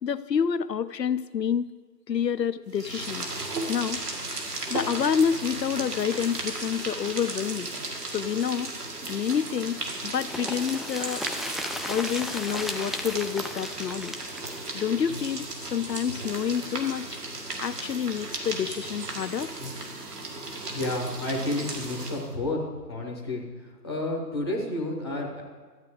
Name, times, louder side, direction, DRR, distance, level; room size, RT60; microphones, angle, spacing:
voice 1, 0.0-1.6 2.1-3.3 3.7-4.0 4.7-7.7 8.1-8.7 9.1-9.8 10.0-11.2 11.9-14.1 14.7-15.5 15.7-17.1 17.6-19.5, left 7 dB, 75° left, 14 dB, 0.7 m, -28 dB
sound 1, 2.7-22.3, right 2 dB, 65° right, 2.1 m, -35 dB
sound 2, 10.2-16.0 16.3-16.4 16.7-16.8, left 1 dB, ahead, 0.3 m, -36 dB
voice 2, 20.7-22.6 22.9-25.4, left 1 dB, 15° left, -4 dB, 0.8 m, -31 dB
12.5 x 8.2 x 4.9 m, 1.4 s
figure-of-eight pair, 155°, 50 cm